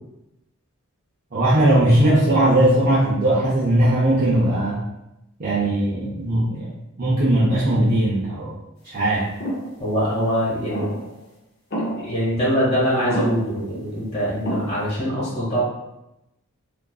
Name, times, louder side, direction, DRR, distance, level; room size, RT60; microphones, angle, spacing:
voice 1, 1.3-4.8 5.4-6.7 7.0-8.6 8.8-9.3, right 1 dB, 40° right, -9 dB, 0.5 m, -19 dB
sound 1, 9.4-9.7 10.7-11.1 11.7-12.2 13.1-13.6 14.5-15.0, right 1 dB, 45° left, 0.5 m, -28 dB
voice 2, 9.8-11.1 11.8-15.6, equal, 25° left, -8 dB, 1.1 m, -23 dB
2.5 x 2.2 x 2.3 m, 0.89 s
head